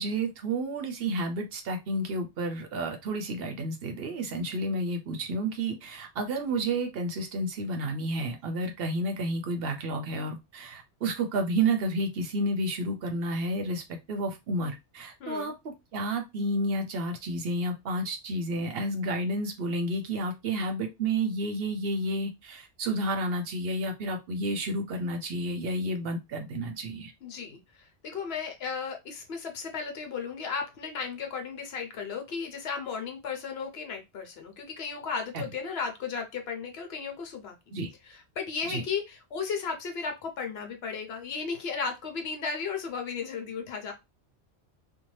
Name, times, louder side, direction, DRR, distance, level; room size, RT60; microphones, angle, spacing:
voice 1, 0.0-13.8 14.1-27.1 35.3-35.4 37.7-37.9 38.7-38.8, right 1 dB, 65° right, 5 dB, 0.8 m, -31 dB
voice 2, 15.2-15.5 27.2-37.6 38.1-43.9, left 5 dB, 70° left, 4 dB, 0.9 m, -35 dB
2.7 x 2.2 x 3.1 m, 0.23 s
omnidirectional pair, 1.1 m